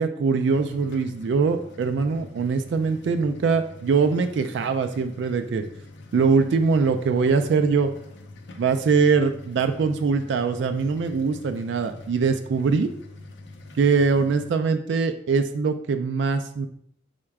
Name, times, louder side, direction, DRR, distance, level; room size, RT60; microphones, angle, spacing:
voice 1, 0.0-5.6 6.1-7.9 8.6-12.9 13.8-16.7, right 5 dB, 70° right, 8 dB, 0.3 m, -22 dB
sound 1, 0.5-14.5, left 2 dB, 70° left, 0.5 m, -44 dB
4.6 x 2.1 x 4.6 m, 0.69 s
head